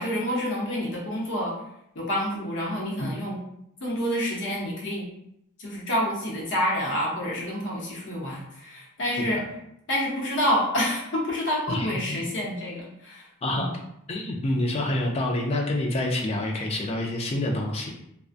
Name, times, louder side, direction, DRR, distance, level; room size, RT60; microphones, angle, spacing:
voice 1, 0.0-1.5 1.9-3.4 3.8-5.1 5.6-9.4 9.9-13.7, equal, 60° left, -4 dB, 0.8 m, -28 dB
voice 2, 9.1-9.4 11.7-12.2 13.4-13.7 14.1-17.9, left 1 dB, 30° left, 0 dB, 0.4 m, -27 dB
2.5 x 2.1 x 2.4 m, 0.77 s
head